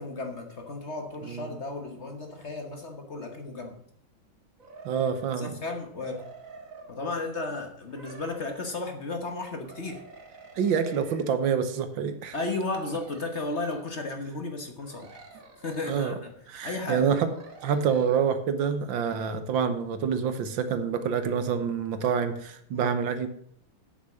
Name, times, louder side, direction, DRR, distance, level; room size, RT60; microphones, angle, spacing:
voice 1, 0.0-3.8 5.4-6.2 6.9-10.0 12.3-15.2 15.6-17.1 22.7-22.9, left 3 dB, 40° left, 5 dB, 1.3 m, -34 dB
sound 1, 4.6-5.4 5.9-6.9 7.9-8.8 9.6-11.3 12.5-13.8 14.8-16.1 17.3-18.2, right 4 dB, 45° right, 1.8 m, -48 dB
voice 2, 4.9-5.6 10.6-12.4 15.8-16.2 16.5-17.3 17.6-23.3, right 7 dB, 75° right, 10 dB, 1.7 m, -27 dB
8.8 x 7.2 x 7.3 m, 0.65 s
omnidirectional pair, 2.2 m